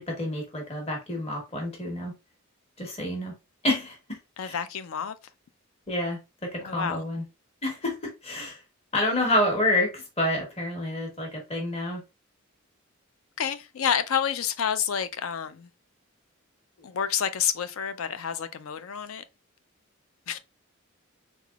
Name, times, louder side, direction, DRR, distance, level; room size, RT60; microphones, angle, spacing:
voice 1, 0.0-2.1 2.8-3.3 3.6-4.2 4.4-4.6 5.9-7.2 7.6-8.6 8.9-12.0, left 1 dB, 30° left, 1.2 m, -28 dB
voice 2, 4.4-5.2 6.6-7.0 13.4-15.7 16.8-19.2 20.3-20.4, left 8 dB, 75° left, 0.4 m, -29 dB
3.7 x 3.4 x 2.3 m
head